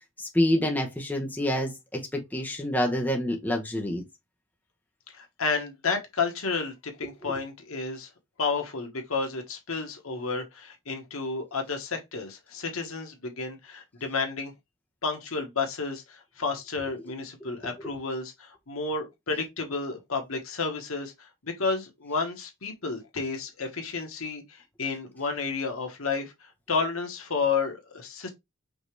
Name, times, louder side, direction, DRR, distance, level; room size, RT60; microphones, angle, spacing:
voice 1, 0.2-4.0 17.8-17.9, left 1 dB, 10° left, 0.8 m, -27 dB
voice 2, 5.1-8.1 8.4-14.5 15.0-26.3 26.7-28.3, left 4 dB, 85° left, 1.3 m, -31 dB
5.2 x 2.9 x 3.1 m
head